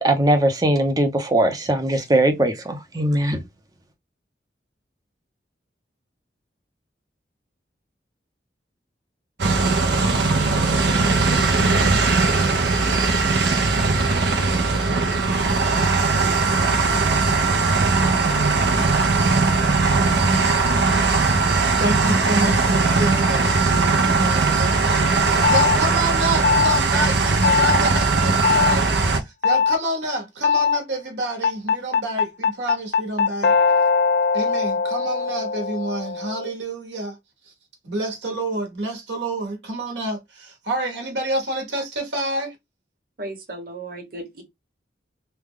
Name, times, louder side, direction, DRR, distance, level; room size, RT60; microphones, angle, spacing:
voice 1, 0.0-3.4, right 1 dB, 20° right, 0.7 m, -20 dB
sound 1, 9.4-29.2, right 3 dB, 70° right, 0.6 m, -19 dB
voice 2, 21.8-33.5 34.3-37.2 37.8-42.5, right 1 dB, 85° right, 1.1 m, -28 dB
sound 2, 25.4-25.8 26.4-26.8 27.4-27.8 28.4-28.8 29.4-29.8 30.4-30.8 31.4-36.5, left 5 dB, 55° left, 0.5 m, -20 dB
voice 3, 43.2-44.4, right 2 dB, 55° right, 1.2 m, -35 dB
3.3 x 2.2 x 3.5 m
head